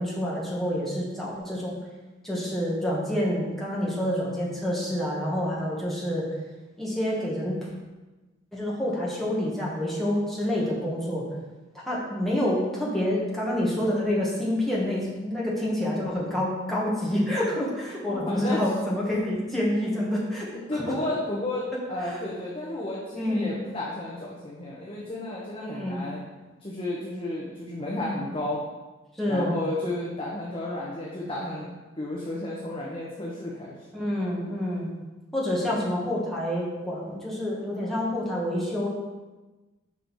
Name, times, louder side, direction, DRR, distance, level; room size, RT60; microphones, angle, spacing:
voice 1, 0.0-1.8 2.2-6.2 6.8-7.6 8.5-11.2 11.8-20.5 20.7-20.9 22.1-22.2 23.1-23.5 25.6-26.0 29.2-29.6 33.9-34.9 35.3-38.9, left 1 dB, ahead, -6 dB, 1.4 m, -27 dB
voice 2, 18.1-18.6 20.7-26.2 26.6-28.6 29.2-31.7 32.0-33.7, left 1 dB, 25° left, -5 dB, 0.9 m, -32 dB
6.3 x 5.2 x 4.0 m, 1.2 s
head